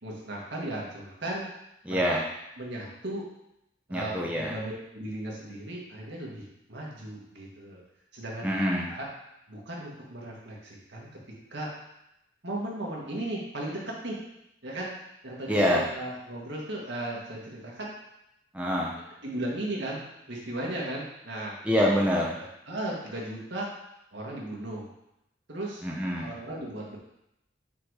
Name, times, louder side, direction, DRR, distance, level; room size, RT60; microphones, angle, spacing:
voice 1, 0.0-1.4 1.9-2.0 2.6-3.2 3.9-7.8 8.1-8.5 8.9-9.0 9.5-11.1 11.5-11.7 12.4-14.2 14.6-14.9 15.2-17.9 18.9-19.0 19.2-21.5 22.4-23.7 24.1-24.9 25.5-25.8 26.2-27.0, right 1 dB, 70° right, -3 dB, 1.7 m, -36 dB
voice 2, 1.9-2.2 3.9-4.5 8.4-8.9 15.5-15.8 18.5-18.9 21.6-22.3 25.8-26.3, equal, 5° right, -3 dB, 0.7 m, -25 dB
5.9 x 4.1 x 4.8 m, 0.85 s
head